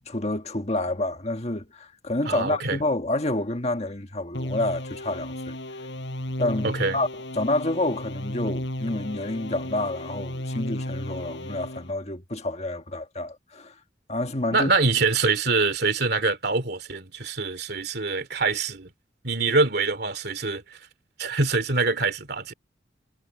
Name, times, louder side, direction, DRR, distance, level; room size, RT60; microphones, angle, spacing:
voice 1, 0.1-5.6 6.4-7.1 7.3-13.7 14.1-14.7, left 2 dB, 35° left, 1.6 m, -28 dB
voice 2, 2.3-2.8 6.6-7.0 14.5-18.9 19.2-20.6 21.2-22.5, right 3 dB, 60° right, 2.7 m, -24 dB
sound 1, 4.3-11.9, left 1 dB, 70° left, 5.7 m, -34 dB
head